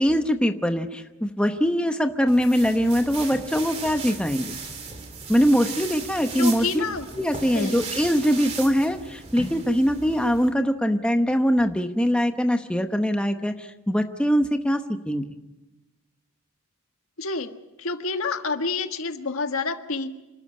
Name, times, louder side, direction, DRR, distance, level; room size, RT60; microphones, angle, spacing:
voice 1, 0.0-4.6 5.3-6.8 7.1-15.2, equal, 5° left, 6 dB, 0.9 m, -22 dB
sound 1, 2.3-10.5, right 4 dB, 30° right, 2.4 m, -37 dB
voice 2, 6.3-7.1 7.5-7.9 17.2-17.5 17.8-20.1, left 3 dB, 75° left, 7 dB, 1.5 m, -28 dB
27.5 x 13.0 x 9.7 m, 1.1 s
head